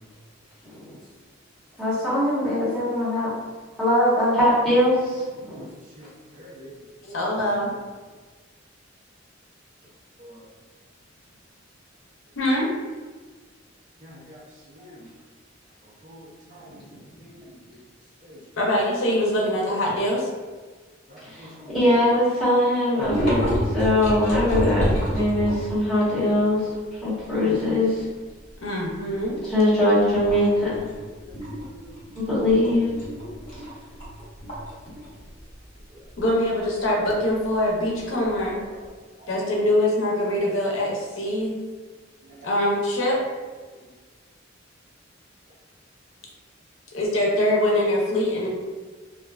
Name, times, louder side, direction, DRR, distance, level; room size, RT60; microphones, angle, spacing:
voice 1, 0.6-1.0 1.8-3.3 3.8-5.7 16.7-16.8 21.2-26.7 27.0-28.0 29.5-30.9 32.1-32.9, left 1 dB, ahead, -12 dB, 1.0 m, -22 dB
voice 2, 6.0-6.7 7.0-7.6 10.2-10.4 14.0-15.1 15.8-16.8 17.2-17.8 18.2-18.4 21.1-21.8 31.2-32.2 35.9-36.0 38.1-38.4 38.7-38.8 39.2-39.3 42.3-42.5, equal, 45° right, -3 dB, 0.5 m, -46 dB
voice 3, 7.1-7.7 12.4-12.7 18.6-20.3 27.4-27.6 28.6-29.4 36.2-38.6 39.3-41.5 42.4-43.2 46.9-48.5, left 1 dB, 75° left, -2 dB, 0.6 m, -23 dB
sound 1, 23.0-25.9 26.4-26.5 26.8-28.0 28.4-28.7 29.1-29.6 30.1-38.8, equal, 40° left, 0.9 m, -29 dB
2.4 x 2.2 x 2.3 m, 1.4 s
head